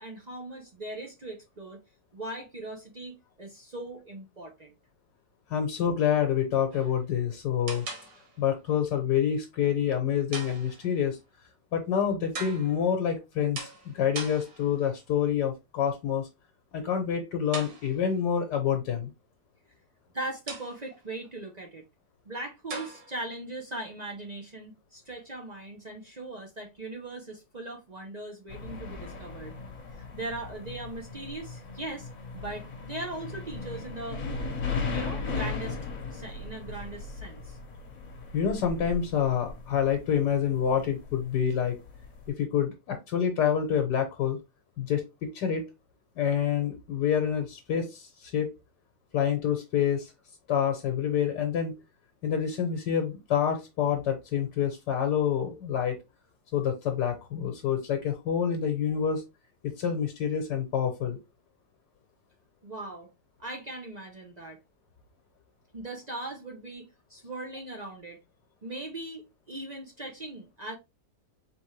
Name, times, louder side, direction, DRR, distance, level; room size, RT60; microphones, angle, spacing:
voice 1, 0.0-1.8 2.1-4.7 20.1-21.8 22.3-29.5 29.9-32.1 32.3-34.2 34.9-35.8 36.1-37.6 62.6-63.1 63.4-64.6 65.7-68.2 68.6-70.7, right 2 dB, 50° right, 0.5 m, -39 dB
voice 2, 5.5-7.9 8.4-11.2 11.7-16.3 16.7-19.1 38.3-41.8 42.3-44.4 44.8-45.7 46.2-48.5 49.1-50.1 50.5-51.8 52.2-56.0 56.5-59.2 59.6-61.2, left 8 dB, 75° left, 1.5 m, -27 dB
sound 1, 6.7-7.1 7.7-8.5 10.3-11.1 12.3-12.9 13.5-14.9 17.5-18.3 20.5-21.1 22.7-23.3, right 3 dB, 85° right, 2.1 m, -41 dB
sound 2, 28.5-42.3, left 4 dB, 50° left, 1.3 m, -37 dB
4.4 x 3.4 x 3.2 m
omnidirectional pair, 1.9 m